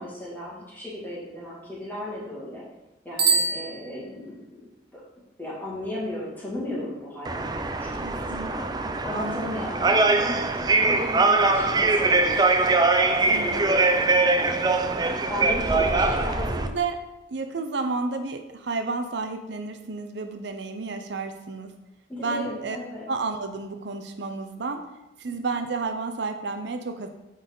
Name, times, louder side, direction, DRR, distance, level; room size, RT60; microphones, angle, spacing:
voice 1, 0.0-2.6 3.0-4.6 4.9-5.0 5.4-8.7 9.0-10.5 10.7-14.9 15.3-16.6 22.1-23.1 25.3-25.4, left 1 dB, 10° left, -8 dB, 2.3 m, -35 dB
Bicycle bell, 3.1-4.5, right 4 dB, 55° right, 1.2 m, -25 dB
sound 1, 7.3-16.7, right 3 dB, 25° right, 0.4 m, -22 dB
voice 2, 8.0-8.8 9.1-9.7 13.3-13.6 15.7-17.0 17.3-21.7 22.2-22.8 23.1-24.8 25.2-27.1, right 4 dB, 80° right, 6 dB, 0.6 m, -31 dB
8.9 x 4.0 x 3.9 m, 0.95 s
head